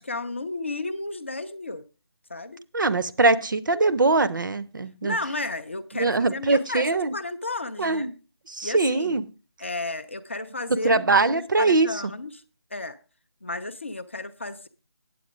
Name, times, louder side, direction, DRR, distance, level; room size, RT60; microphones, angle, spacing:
voice 1, 0.0-1.8 2.3-2.6 5.0-8.1 8.6-9.2 9.6-12.4 12.7-13.0 13.4-14.7, left 2 dB, 30° left, 0.4 m, -33 dB
voice 2, 2.7-5.2 6.0-7.1 7.8-8.1 8.5-9.2 10.8-11.9, right 3 dB, 50° right, 0.6 m, -22 dB
8.5 x 8.0 x 4.9 m
figure-of-eight pair, 170°, 14 cm